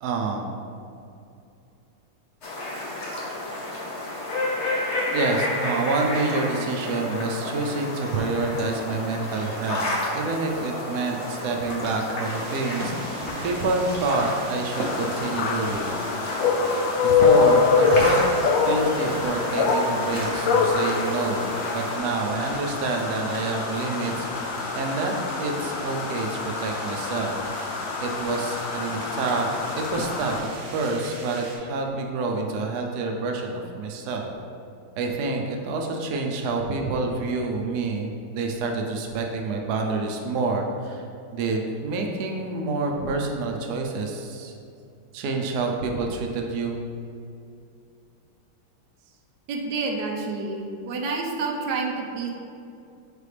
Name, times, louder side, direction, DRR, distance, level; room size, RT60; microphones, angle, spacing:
voice 1, 0.0-0.6 5.1-9.9 10.1-15.9 17.0-18.2 18.6-27.3 28.0-30.4 30.7-34.3 35.0-41.0 41.3-44.5 45.1-46.8, right 3 dB, 90° right, 1 dB, 0.8 m, -28 dB
sound 1, 2.4-22.0, left 1 dB, 50° left, 0.9 m, -31 dB
sound 2, 12.2-31.6, right 1 dB, 50° right, 0.8 m, -39 dB
sound 3, 14.7-30.4, left 5 dB, 75° left, 1.2 m, -25 dB
voice 2, 49.5-52.3, right 3 dB, 70° right, 1 dB, 1.0 m, -29 dB
6.7 x 4.6 x 3.3 m, 2.5 s
omnidirectional pair, 2.4 m